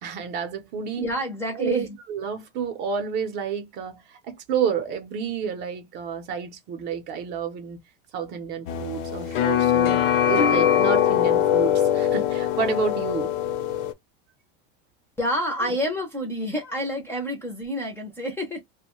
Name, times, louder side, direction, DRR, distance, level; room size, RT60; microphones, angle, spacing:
voice 1, 0.0-1.1 1.5-7.8 8.1-10.0 10.3-13.3 15.6-15.7, right 7 dB, 35° right, 0.6 m, -30 dB
voice 2, 1.0-2.0 15.2-18.6, equal, 10° left, 0.5 m, -28 dB
sound 1, 8.7-13.9, left 10 dB, 60° left, 0.7 m, -22 dB
2.6 x 2.1 x 2.9 m
supercardioid pair, 165°, 30 cm